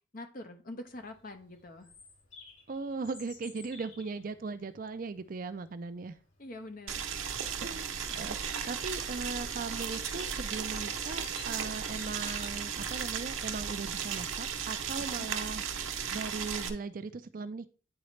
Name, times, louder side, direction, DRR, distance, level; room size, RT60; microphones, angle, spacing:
voice 1, 0.1-1.9 6.4-7.1 15.0-15.3, left 1 dB, 45° left, 1.0 m, -45 dB
Bird vocalization bird call bird song, 0.9-13.6, left 4 dB, 85° left, 3.3 m, -54 dB
voice 2, 2.7-6.2 7.6-7.9 8.2-15.6 16.1-17.7, right 4 dB, 45° right, 0.4 m, -38 dB
Boiling, 6.9-16.7, right 7 dB, 85° right, 0.9 m, -35 dB
sound 1, 7.8-8.3 8.7-9.5 9.9-10.3 11.1-11.9 12.2-13.2, equal, 20° left, 2.0 m, -58 dB
9.7 x 4.0 x 3.2 m
head